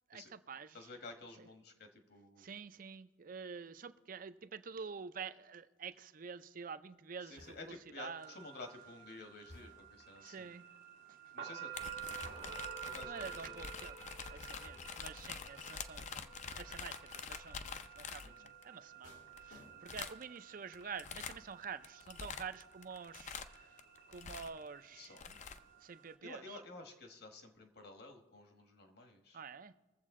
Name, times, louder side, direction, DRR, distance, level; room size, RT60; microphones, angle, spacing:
voice 1, 0.1-0.8 1.4-1.5 2.4-8.3 10.2-10.6 13.0-14.0 14.3-16.3 16.6-23.8 24.1-25.2 25.8-26.6 29.3-29.7, right 6 dB, 45° right, 13 dB, 0.5 m, -48 dB
voice 2, 0.7-2.5 7.2-10.5 11.3-12.5 12.8-13.2 18.2-18.5 24.9-25.4 26.2-29.4, left 3 dB, 55° left, 5 dB, 1.3 m, -52 dB
sound 1, 7.4-7.9 9.5-10.1 12.2-12.8 14.7-15.2 16.4-16.9 19.0-20.2 20.5-20.9, left 1 dB, 90° left, 2.3 m, -59 dB
sound 2, 8.2-26.2, right 8 dB, 85° right, 1.5 m, -51 dB
sound 3, 11.7-18.6 19.4-19.5 19.9-20.4 20.7-21.5 21.8-24.7 25.0-25.6, left 6 dB, 40° left, 0.5 m, -46 dB
21.5 x 7.5 x 3.7 m, 1.1 s
head